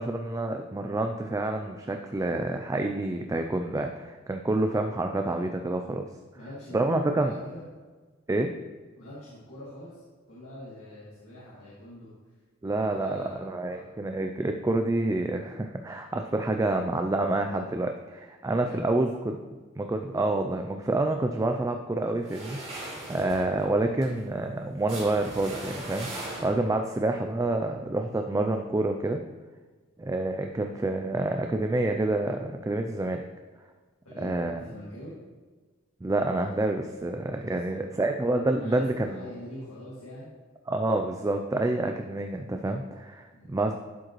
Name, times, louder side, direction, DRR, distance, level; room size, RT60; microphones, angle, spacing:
voice 1, 0.0-6.1 6.7-7.3 8.3-8.5 12.6-19.4 19.8-29.2 30.0-33.2 34.2-34.6 36.0-39.2 40.7-43.7, right 2 dB, 15° right, 5 dB, 0.3 m, -28 dB
voice 2, 6.3-7.6 9.0-10.0 10.3-12.1 12.7-13.9 18.6-18.8 34.0-35.2 37.5-37.9 38.6-40.3 43.3-43.5, left 1 dB, 75° left, -9 dB, 2.1 m, -44 dB
sound 1, 22.2-26.9, right 2 dB, 30° right, 2.6 m, -40 dB
11.5 x 5.0 x 3.1 m, 1.3 s
head